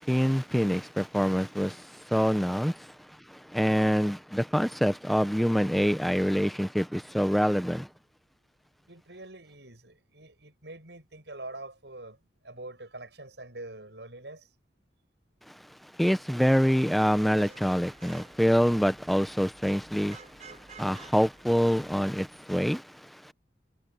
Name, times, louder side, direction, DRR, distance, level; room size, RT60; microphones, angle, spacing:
voice 1, 0.0-2.9 3.3-7.9 15.5-15.6 16.0-23.3, equal, ahead, 0.8 m, -26 dB
voice 2, 8.9-12.2 12.4-14.5, right 2 dB, 75° right, 7.7 m, -44 dB
Vehicle horn car horn honking / Traffic noise roadway noise, 17.1-22.4, right 4 dB, 40° right, 5.4 m, -54 dB
head